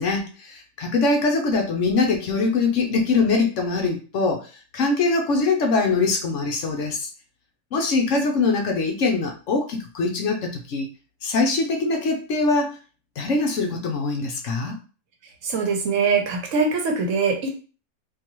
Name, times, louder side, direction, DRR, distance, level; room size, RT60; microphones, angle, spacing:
voice 1, 0.0-7.1 7.7-10.9 11.2-12.8 13.2-14.8, left 3 dB, 65° left, 2 dB, 0.9 m, -23 dB
voice 2, 15.4-17.5, right 4 dB, 65° right, 3 dB, 1.0 m, -22 dB
3.8 x 2.6 x 2.9 m, 0.36 s
omnidirectional pair, 1.5 m